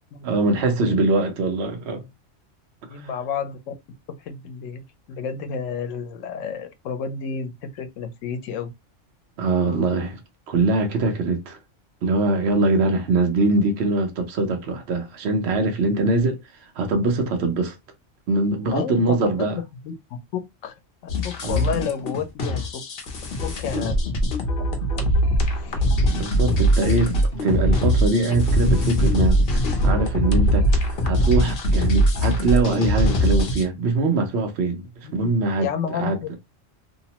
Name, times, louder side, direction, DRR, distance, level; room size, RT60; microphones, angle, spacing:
voice 1, 0.2-2.0 9.4-10.2 10.5-11.6 12.0-16.4 16.8-17.8 18.3-19.6 21.4-21.7 23.7-23.9 26.1-27.1 27.4-29.4 29.8-36.4, right 3 dB, 60° right, 0.9 m, -22 dB
voice 2, 2.9-3.7 4.2-4.8 5.1-8.7 16.0-16.1 18.7-19.3 19.8-20.2 20.6-20.7 21.0-22.8 23.4-24.0 24.9-25.1 25.6-25.9 35.0-35.3 35.6-36.4, left 6 dB, 90° left, 1.0 m, -31 dB
sound 1, 21.1-33.7, equal, 55° left, 0.9 m, -21 dB
2.8 x 2.0 x 2.8 m
omnidirectional pair, 1.3 m